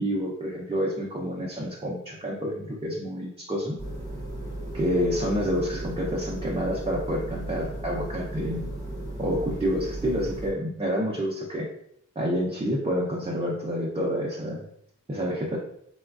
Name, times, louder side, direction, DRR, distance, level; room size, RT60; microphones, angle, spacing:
voice 1, 0.0-3.8 4.7-8.7 9.2-11.7 12.2-14.6 15.1-15.6, equal, 20° right, -4 dB, 0.5 m, -28 dB
sound 1, 3.8-10.5, right 1 dB, 10° left, 1.0 m, -35 dB
4.2 x 2.2 x 2.4 m, 0.71 s
wide cardioid pair, 130°, 31 cm